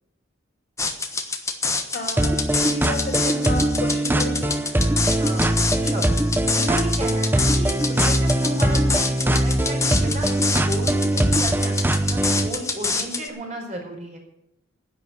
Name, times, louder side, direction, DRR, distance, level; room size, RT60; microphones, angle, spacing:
sound 1, 0.8-13.3, left 4 dB, 15° left, 1.2 m, -27 dB
voice 1, 1.9-2.3 2.7-4.5, left 1 dB, 55° left, 3 dB, 3.0 m, -31 dB
sound 2, 2.2-12.5, right 1 dB, 10° right, 0.8 m, -21 dB
voice 2, 5.8-6.1 6.5-14.2, right 1 dB, 35° right, 0 dB, 4.6 m, -33 dB
10.5 x 9.7 x 8.2 m, 0.84 s
head